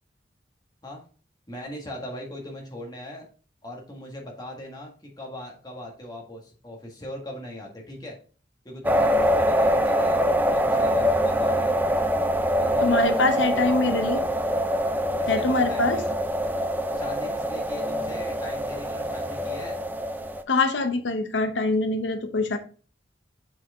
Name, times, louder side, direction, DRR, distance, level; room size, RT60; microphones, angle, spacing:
voice 1, 1.5-3.3 3.6-8.2 8.6-10.2 10.5-11.8 12.4-14.2 15.2-16.1 16.9-19.8, left 1 dB, 20° left, 0 dB, 1.6 m, -39 dB
sound 1, 8.8-20.4, equal, 10° right, 0.4 m, -24 dB
voice 2, 12.8-14.2 15.3-16.0 20.5-22.6, left 2 dB, 90° left, 7 dB, 0.8 m, -23 dB
7.6 x 4.5 x 3.6 m, 0.39 s
head